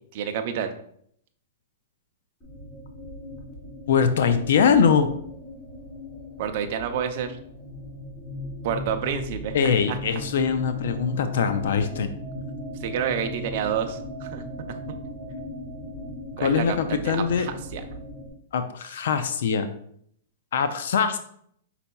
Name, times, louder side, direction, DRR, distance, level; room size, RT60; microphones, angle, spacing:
voice 1, 0.1-0.7 6.4-7.4 8.6-10.0 12.8-14.4 16.4-17.8, right 8 dB, 50° right, 6 dB, 0.5 m, -29 dB
sound 1, 2.4-18.3, left 1 dB, 15° left, 1.2 m, -37 dB
voice 2, 3.9-5.1 9.5-12.1 16.4-17.5 18.5-19.7 20.5-21.2, left 6 dB, 70° left, 10 dB, 0.4 m, -22 dB
5.4 x 4.0 x 2.2 m, 0.68 s
hypercardioid pair, 145°, 0 cm